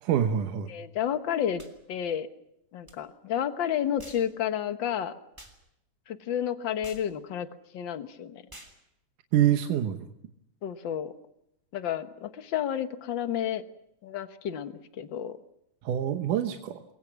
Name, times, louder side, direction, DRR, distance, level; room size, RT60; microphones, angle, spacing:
voice 1, 0.0-0.7 9.3-10.0 15.8-16.8, right 10 dB, 85° right, 6 dB, 2.6 m, -25 dB
voice 2, 0.7-1.6 1.9-2.3 2.7-5.1 6.1-7.5 7.7-8.4 10.6-11.1 11.7-13.6 14.0-15.4, left 9 dB, 55° left, 9 dB, 1.4 m, -31 dB
sound 1, 1.6-1.8 2.9-3.0 4.0-4.3 5.4-5.6 6.8-7.1 8.5-8.8, right 1 dB, 5° right, 2.9 m, -48 dB
29.0 x 22.5 x 5.9 m, 0.80 s
omnidirectional pair, 3.5 m